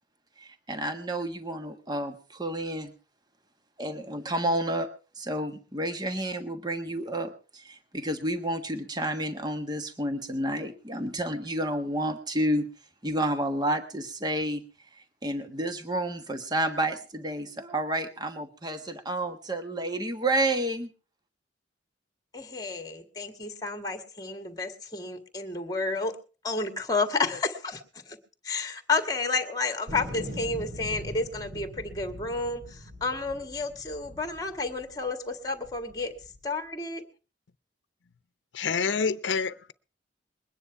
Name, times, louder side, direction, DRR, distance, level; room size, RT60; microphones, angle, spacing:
voice 1, 0.4-2.9 3.8-4.9 5.2-12.7 13.0-14.6 15.2-20.9, right 1 dB, 20° right, 7 dB, 1.3 m, -30 dB
voice 2, 22.3-26.2 26.4-28.2 28.4-36.1 36.4-37.0, left 3 dB, 20° left, 6 dB, 1.8 m, -31 dB
sound 1, 29.9-35.1 35.6-36.4, left 1 dB, 60° right, 4.0 m, -42 dB
voice 3, 38.5-39.7, left 5 dB, 80° left, 13 dB, 0.7 m, -27 dB
21.5 x 9.9 x 4.6 m, 0.36 s
head